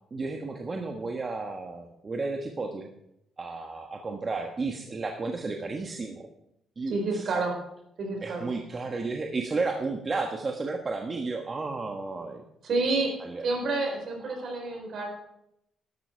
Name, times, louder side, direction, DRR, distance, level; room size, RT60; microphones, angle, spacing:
voice 1, 0.1-2.9 3.4-6.3 6.8-7.3 8.2-12.4 13.2-13.4 14.3-14.8, right 3 dB, 35° right, 3 dB, 1.4 m, -33 dB
voice 2, 6.9-7.6 8.0-8.5 12.6-15.1, right 3 dB, 60° right, 3 dB, 4.7 m, -29 dB
12.5 x 12.5 x 4.6 m, 0.79 s
cardioid pair, 90°, 0 cm